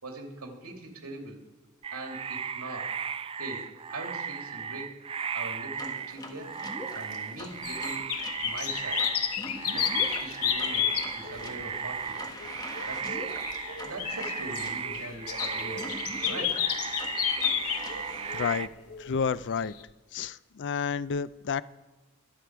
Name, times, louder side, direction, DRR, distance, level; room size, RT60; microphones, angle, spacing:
voice 1, 0.0-1.4 1.9-3.0 3.4-5.0 5.3-6.5 6.9-8.1 8.4-9.1 9.7-12.2 12.4-13.2 13.8-15.9 16.2-16.7, right 2 dB, 80° right, 2 dB, 2.8 m, -42 dB
singing frogs, 1.8-18.7, right 6 dB, 25° right, 0.4 m, -36 dB
sound 1, 5.8-18.6, left 1 dB, 20° left, 1.5 m, -44 dB
sound 2, 7.4-11.5 12.1-19.2 19.8-19.9, left 10 dB, 80° left, 1.0 m, -32 dB
voice 2, 18.3-18.7 19.0-19.7 20.1-21.6, left 6 dB, 55° left, 16 dB, 0.4 m, -30 dB
24.0 x 8.4 x 4.7 m, 1.2 s
head